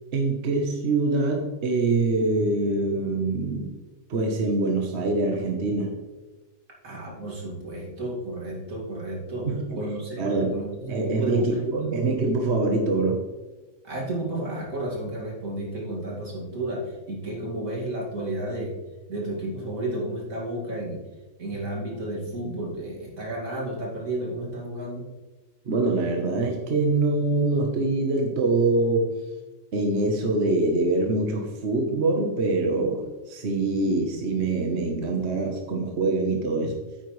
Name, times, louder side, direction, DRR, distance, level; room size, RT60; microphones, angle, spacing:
voice 1, 0.1-3.8 4.1-6.0 9.5-9.8 10.2-10.5 10.9-13.2 25.7-29.1 29.7-36.8, right 2 dB, 55° right, 2 dB, 1.3 m, -24 dB
voice 2, 6.8-9.5 9.7-12.0 13.8-18.8 19.1-21.0 21.4-25.1, right 1 dB, 85° right, -2 dB, 2.7 m, -32 dB
9.3 x 9.1 x 3.2 m, 1.2 s
omnidirectional pair, 1.4 m